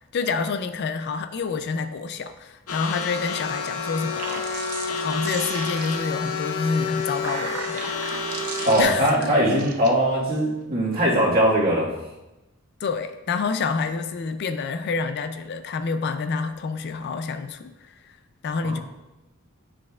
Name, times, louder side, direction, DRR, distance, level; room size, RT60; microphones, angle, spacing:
voice 1, 0.1-4.4 5.0-7.9 8.8-9.3 12.8-17.9 18.4-18.8, left 4 dB, 50° left, 9 dB, 0.4 m, -28 dB
sound 1, 2.7-8.8, left 4 dB, 75° left, 0.8 m, -29 dB
sound 2, 4.0-6.2 6.9-9.9, right 6 dB, 75° right, 0.6 m, -37 dB
voice 2, 8.6-11.9 18.6-18.8, equal, 45° right, -5 dB, 1.6 m, -21 dB
9.4 x 5.1 x 2.3 m, 1.0 s
head